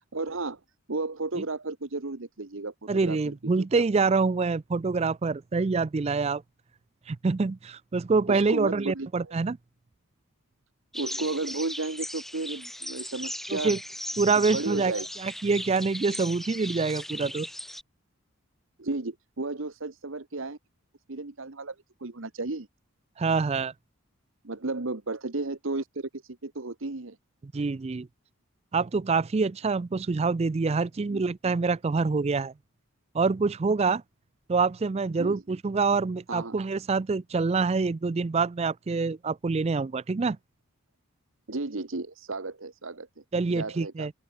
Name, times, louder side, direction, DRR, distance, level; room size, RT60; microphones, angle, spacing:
voice 1, 0.1-0.6 0.9-3.7 8.3-9.4 10.9-13.8 14.5-15.1 18.8-20.6 21.1-22.7 24.4-27.2 31.1-31.2 35.2-35.4 36.3-36.6 41.5-43.2 43.5-44.1, right 3 dB, 65° right, 1.2 m, -33 dB
voice 2, 2.9-6.4 7.1-9.6 13.5-13.8 14.2-14.9 15.2-17.5 23.2-23.7 27.4-28.1 28.7-32.5 33.1-34.0 34.5-40.4 43.3-44.1, right 4 dB, 30° right, 0.3 m, -26 dB
sound 1, 10.9-17.8, left 1 dB, ahead, 1.2 m, -37 dB
open air
head